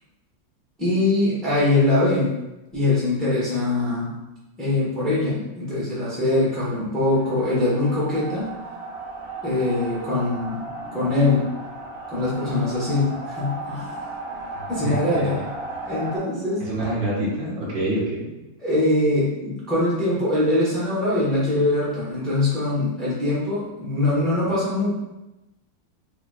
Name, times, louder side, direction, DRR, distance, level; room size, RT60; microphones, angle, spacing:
voice 1, 0.8-2.3 2.7-4.1 4.6-8.5 9.4-10.7 10.9-11.5 12.1-14.0 14.7-15.4 15.9-16.6 18.6-24.9, left 2 dB, ahead, -9 dB, 0.9 m, -22 dB
sound 1, 7.1-16.2, right 2 dB, 55° right, 1.3 m, -35 dB
voice 2, 14.6-15.3 16.6-18.3, right 1 dB, 80° right, -5 dB, 1.8 m, -27 dB
4.0 x 2.8 x 2.4 m, 0.98 s
omnidirectional pair, 2.0 m